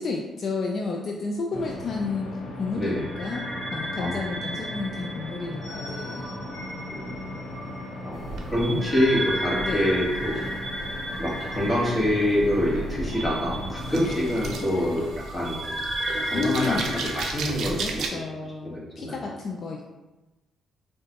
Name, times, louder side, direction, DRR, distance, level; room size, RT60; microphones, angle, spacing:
voice 1, 0.0-2.3 2.6-6.4 9.6-9.8 16.3-17.0 17.7-20.0, left 4 dB, 50° left, 1 dB, 0.3 m, -32 dB
sound 1, 1.5-15.1, left 1 dB, 75° left, 0.9 m, -37 dB
voice 2, 2.8-3.1 4.0-4.3 6.9-7.1 8.0-10.5 11.2-15.8 16.2-18.2 18.6-19.3, left 1 dB, 15° left, -6 dB, 1.2 m, -26 dB
sound 2, 2.9-17.3, right 1 dB, 25° right, 1.0 m, -35 dB
sound 3, 8.1-18.1, right 3 dB, 70° right, 0.4 m, -36 dB
3.7 x 2.2 x 2.8 m, 1.1 s
cardioid pair, 90°, 0 cm